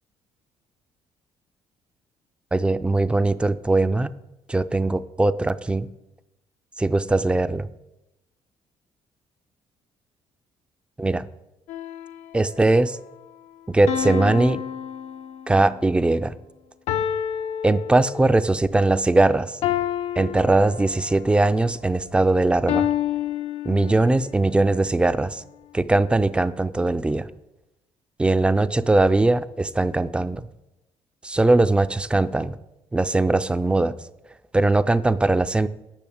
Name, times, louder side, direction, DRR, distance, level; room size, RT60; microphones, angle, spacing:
voice 1, 2.5-4.1 4.5-5.9 6.8-7.7 11.0-11.3 12.3-13.0 13.7-14.6 15.5-16.3 17.6-19.6 20.2-22.9 23.7-25.4 25.7-27.3 28.2-30.4 31.2-32.6 32.9-33.9 34.5-35.7, right 2 dB, 10° right, 14 dB, 0.4 m, -20 dB
sound 1, 11.7-12.5 13.9-15.7 16.9-18.5 19.6-21.3 22.7-24.3, left 10 dB, 90° left, 0.8 m, -28 dB
10.5 x 6.4 x 8.6 m, 0.95 s
cardioid pair, 145°, 11 cm